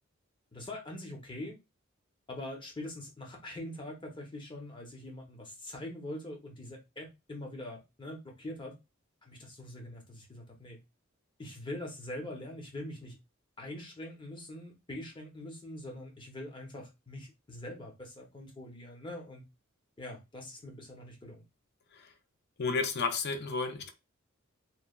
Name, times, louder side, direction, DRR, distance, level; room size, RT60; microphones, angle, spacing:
voice 1, 0.5-1.6 2.3-8.7 9.2-10.8 11.4-13.2 13.6-19.4 20.0-21.4, left 1 dB, 25° left, 0.8 m, -43 dB
voice 2, 22.6-23.9, left 4 dB, 50° left, 0.5 m, -32 dB
3.1 x 2.2 x 2.3 m
head